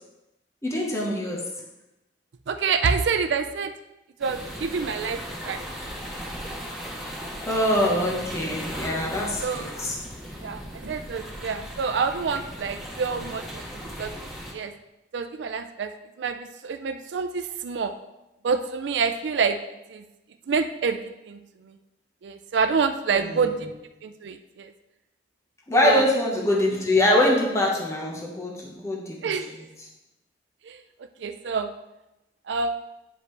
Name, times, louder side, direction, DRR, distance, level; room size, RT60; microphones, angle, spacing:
voice 1, 0.6-1.5 7.5-10.0 23.1-23.4 25.7-29.4, left 1 dB, 15° left, -2 dB, 1.1 m, -24 dB
voice 2, 2.5-3.7 4.2-5.6 9.4-9.7 10.4-13.6 14.0-14.1 14.5-14.7 15.1-15.9 16.2-16.4 16.6-17.9 18.4-19.6 19.9-20.0 20.5-21.4 22.2-23.7 24.0-24.7 25.8-26.0 29.2-29.5 30.7-30.8 31.2-31.7 32.5-32.7, right 5 dB, 85° right, 8 dB, 0.4 m, -27 dB
sound 1, 4.2-14.5, equal, ahead, 1.4 m, -37 dB
9.6 x 5.1 x 3.3 m, 0.97 s
head